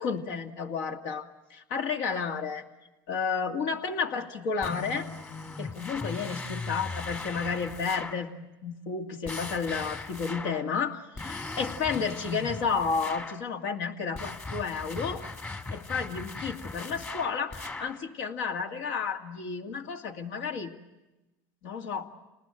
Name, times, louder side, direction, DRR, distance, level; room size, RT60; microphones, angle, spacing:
voice 1, 0.0-2.6 3.1-5.1 5.6-8.3 8.6-15.2 15.7-20.7 21.6-22.1, left 5 dB, 75° left, 4 dB, 2.2 m, -32 dB
sound 1, 4.6-8.3 9.2-10.7 11.2-13.4 14.1-18.0, left 3 dB, 20° left, 1.8 m, -38 dB
28.5 x 20.0 x 9.0 m, 1.1 s
supercardioid pair, 105°, 10 cm